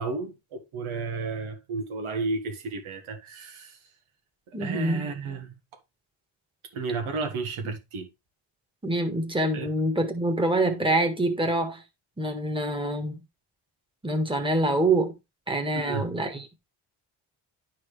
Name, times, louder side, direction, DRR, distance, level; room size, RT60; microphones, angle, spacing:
voice 1, 0.0-3.8 4.6-5.6 6.7-8.1 9.5-9.7 15.7-16.1, right 4 dB, 80° right, 1.6 m, -32 dB
voice 2, 4.5-5.1 7.6-7.7 8.8-11.8 12.2-13.2 14.0-15.2 15.5-16.5, right 1 dB, 10° right, 1.6 m, -26 dB
10.5 x 4.4 x 3.3 m
cardioid pair, 95°, 48 cm